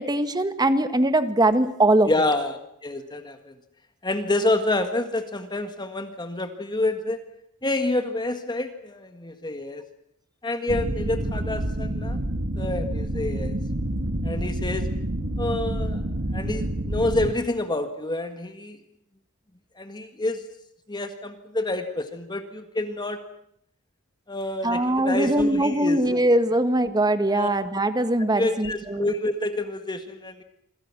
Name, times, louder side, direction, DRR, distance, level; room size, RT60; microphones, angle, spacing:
voice 1, 0.0-2.1 24.6-29.0, right 1 dB, 20° right, 10 dB, 1.7 m, -21 dB
voice 2, 2.1-3.5 4.0-7.2 7.6-9.8 10.4-12.2 12.6-13.5 14.2-14.9 15.4-16.0 16.3-18.8 19.8-20.4 20.9-23.2 24.3-26.0 27.3-27.5 28.2-30.4, left 2 dB, 20° left, 7 dB, 1.8 m, -28 dB
sound 1, 10.7-17.3, right 1 dB, 55° right, 2.0 m, -28 dB
27.5 x 25.5 x 6.1 m, 0.70 s
head